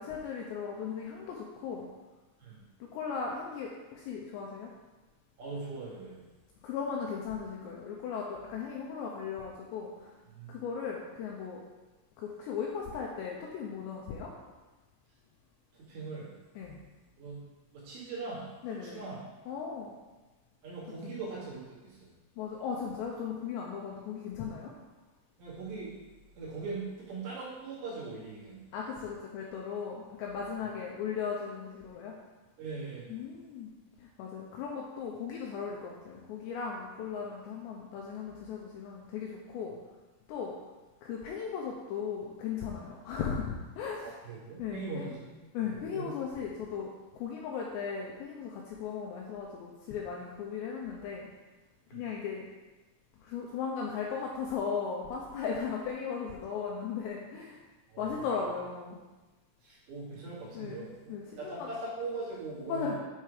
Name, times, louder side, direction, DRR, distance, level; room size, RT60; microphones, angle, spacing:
voice 1, 0.0-1.9 2.8-4.7 6.6-10.2 10.5-11.6 12.2-14.5 16.6-16.8 18.6-19.0 19.5-19.9 21.0-21.1 22.4-24.7 28.7-32.1 33.1-33.7 34.0-39.8 40.3-40.5 41.0-44.2 44.6-45.2 45.5-51.3 51.9-52.5 53.2-57.6 58.0-59.0 60.5-61.7 62.7-63.0, left 6 dB, 85° left, -1 dB, 2.6 m, -37 dB
voice 2, 5.4-6.2 10.3-10.6 15.8-16.3 17.2-17.4 17.7-18.5 18.8-19.2 20.6-22.1 25.4-25.9 26.4-28.6 32.6-33.2 44.0-45.3 45.7-46.1 51.9-52.0 57.9-58.3 59.6-60.9 61.4-63.0, right 3 dB, 65° right, -8 dB, 4.3 m, -40 dB
9.2 x 4.5 x 4.9 m, 1.2 s
omnidirectional pair, 5.8 m